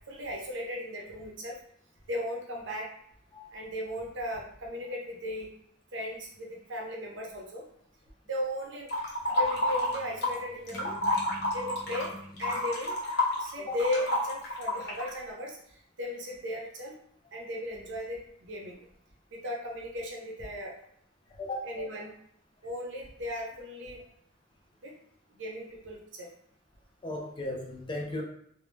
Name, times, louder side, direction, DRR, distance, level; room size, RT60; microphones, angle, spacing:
voice 1, 0.1-1.6 2.1-2.9 3.5-5.5 5.9-7.6 8.3-8.9 9.3-11.0 11.5-12.1 12.4-13.0 13.4-15.6 16.0-16.9 17.3-18.8 19.3-20.8 21.6-22.1 22.6-24.0 24.8-24.9 25.4-26.3, left 1 dB, 60° right, -1 dB, 0.6 m, -36 dB
sound 1, 8.9-10.4 10.7-15.1, left 1 dB, 50° left, 0.7 m, -29 dB
sound 2, 9.4-12.7, left 1 dB, 5° right, 0.9 m, -48 dB
voice 2, 27.0-28.2, left 1 dB, 25° left, -1 dB, 0.3 m, -35 dB
2.1 x 2.1 x 3.1 m, 0.68 s
head